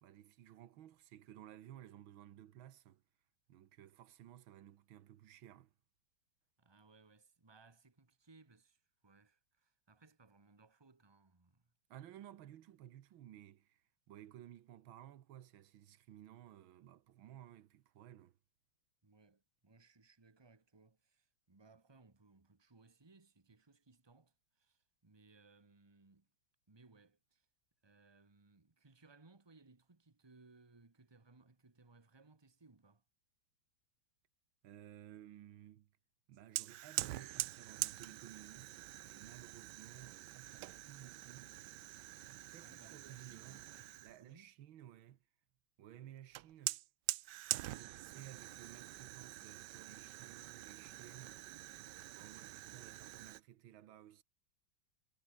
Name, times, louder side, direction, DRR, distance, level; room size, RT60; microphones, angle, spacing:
voice 1, 0.0-3.0 3.5-5.7 11.9-18.4 34.6-35.9 36.3-41.5 42.3-43.7 44.0-45.2 45.8-46.8 47.6-51.4 52.1-54.2, right 11 dB, 85° right, 1.8 m, -56 dB
voice 2, 6.6-11.7 19.0-26.3 26.7-27.5 27.8-33.0 42.5-44.5, right 3 dB, 15° right, 1.5 m, -65 dB
Fire, 36.6-44.2 46.3-53.4, right 16 dB, 70° right, 1.1 m, -45 dB
omnidirectional pair, 2.2 m